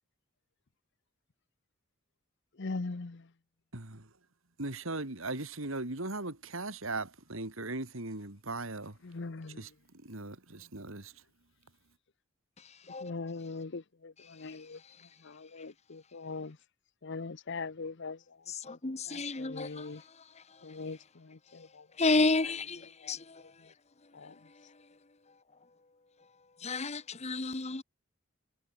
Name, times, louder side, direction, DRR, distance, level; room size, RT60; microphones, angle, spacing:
voice 1, 2.6-3.3 9.0-9.6 13.0-14.8 15.2-16.6 17.0-18.2 18.7-18.8 19.1-20.0 20.6-21.9 22.4-22.5 23.4-23.5 24.1-24.3, left 3 dB, 55° left, 0.8 m, -41 dB
voice 2, 3.7-4.1 4.6-9.0 9.6-9.7 10.0-11.1, right 2 dB, 65° right, 2.9 m, -38 dB
voice 3, 18.7-19.8 22.0-22.8 23.0-23.2 26.6-27.8, left 3 dB, 30° left, 1.1 m, -30 dB
head